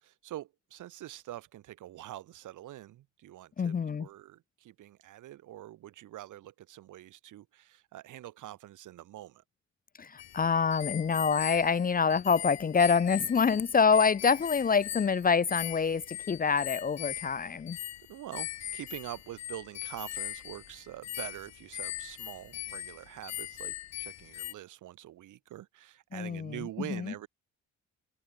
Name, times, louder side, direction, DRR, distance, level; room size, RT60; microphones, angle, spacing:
voice 1, 0.0-9.4 18.1-27.3, right 14 dB, 80° right, 5.0 m, -45 dB
voice 2, 3.6-4.1 10.0-17.8 26.1-27.1, left 5 dB, 30° left, 0.7 m, -26 dB
sound 1, 10.2-24.5, left 12 dB, 60° left, 0.9 m, -40 dB
cardioid pair, 90°, 30 cm